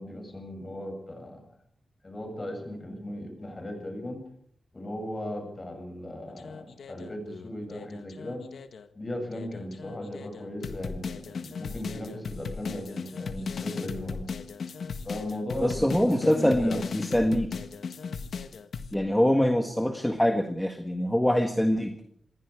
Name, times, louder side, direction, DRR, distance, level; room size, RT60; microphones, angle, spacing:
voice 1, 0.0-1.4 2.0-4.2 4.7-8.5 8.9-14.2 15.0-16.9, left 1 dB, 25° left, 4 dB, 7.5 m, -37 dB
sound 1, 6.3-8.9 9.3-18.9, left 5 dB, 70° left, 1.6 m, -37 dB
voice 2, 15.6-17.5 18.9-22.0, equal, 5° left, 5 dB, 1.6 m, -24 dB
27.0 x 21.5 x 4.9 m, 0.65 s
wide cardioid pair, 170°, 0 cm